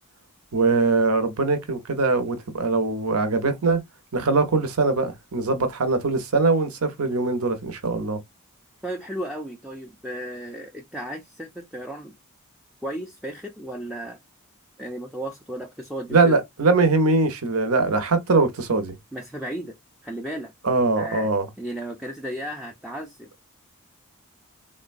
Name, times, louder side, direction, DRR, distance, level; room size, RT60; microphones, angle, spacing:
voice 1, 0.5-3.8 4.1-8.2 16.1-19.0 20.6-21.5, right 3 dB, 80° right, 0.8 m, -22 dB
voice 2, 8.8-12.1 12.8-14.2 14.8-16.4 19.1-19.8 20.0-20.5 21.0-21.3 21.6-23.3, right 1 dB, ahead, 0.4 m, -34 dB
3.7 x 2.2 x 2.5 m
head